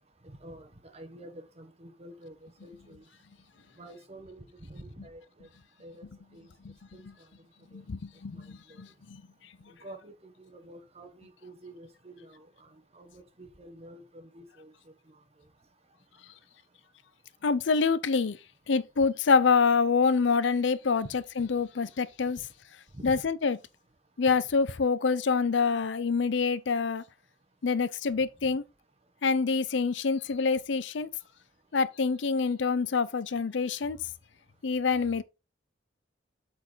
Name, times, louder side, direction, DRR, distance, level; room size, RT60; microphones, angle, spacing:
voice 1, 0.4-3.0 3.8-5.2 5.8-6.1 6.3-6.4 6.9-7.0 7.7-7.8 9.8-12.7 12.9-14.7 22.9-23.2, right 1 dB, 35° right, 1.2 m, -48 dB
voice 2, 7.7-9.2 17.4-18.4 18.7-22.4 23.0-23.6 24.2-27.0 27.6-28.6 29.2-31.1 31.7-34.0 34.6-35.2, left 5 dB, 70° left, 0.5 m, -26 dB
8.3 x 4.5 x 4.0 m
head